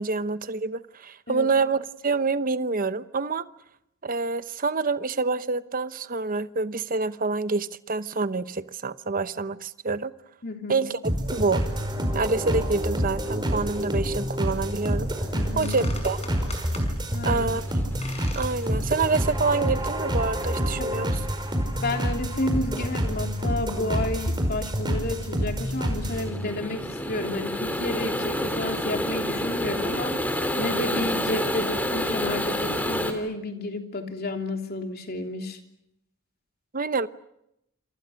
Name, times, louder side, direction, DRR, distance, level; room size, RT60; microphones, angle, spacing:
voice 1, 0.0-3.4 4.0-10.1 10.7-11.6 12.1-15.1 15.6-16.2 17.2-17.6 18.4-21.2 36.7-37.1, right 4 dB, 40° right, 13 dB, 0.9 m, -27 dB
voice 2, 10.4-10.9 15.3-15.8 17.1-17.5 20.8-20.9 21.8-35.6, left 2 dB, 45° left, 4 dB, 3.2 m, -31 dB
sound 1, 11.0-26.3, equal, 20° right, 5.1 m, -27 dB
sound 2, 15.6-16.9 18.0-18.5 19.0-19.1 19.7-19.8 20.5-20.7, left 3 dB, 30° left, 5.7 m, -41 dB
sound 3, 17.4-33.1, left 1 dB, 10° left, 3.3 m, -30 dB
28.0 x 27.5 x 6.5 m, 0.81 s
head